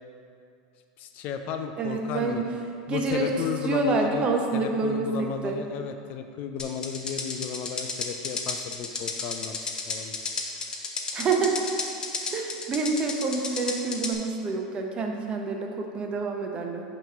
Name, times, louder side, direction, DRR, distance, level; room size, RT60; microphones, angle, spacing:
voice 1, 1.0-2.4 2.9-4.3 4.5-10.3, left 7 dB, 50° left, 7 dB, 0.4 m, -34 dB
voice 2, 1.8-2.4 2.9-3.3 3.6-5.6 11.1-11.6 12.3-16.8, right 4 dB, 30° right, 2 dB, 0.7 m, -27 dB
sound 1, 6.6-14.1, left 4 dB, 25° left, 0.7 m, -32 dB
5.7 x 3.1 x 5.4 m, 2.4 s
supercardioid pair, 115°, 3 cm